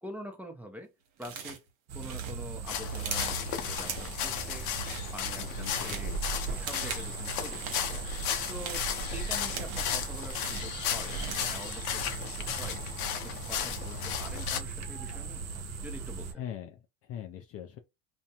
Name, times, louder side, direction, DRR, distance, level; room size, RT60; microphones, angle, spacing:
voice 1, 0.0-0.9 1.2-1.6 1.9-4.7 5.1-6.2 6.4-8.0 8.5-8.9 9.1-12.8 13.1-15.5 15.8-16.3, equal, 5° right, 0.8 m, -45 dB
sound 1, 1.2-1.7 2.0-3.4 3.8-4.3 4.6-5.1 5.4-6.1 6.5-7.1 7.4-7.9 8.4-10.0 10.3-11.6, right 6 dB, 60° right, 1.0 m, -41 dB
sound 2, 1.9-16.3, right 5 dB, 40° right, 0.7 m, -38 dB
sound 3, 2.7-14.6, left 9 dB, 75° left, 0.7 m, -35 dB
voice 2, 5.4-6.4 16.4-17.8, left 10 dB, 35° left, 0.4 m, -42 dB
2.5 x 2.2 x 2.8 m
hypercardioid pair, 90°, 41 cm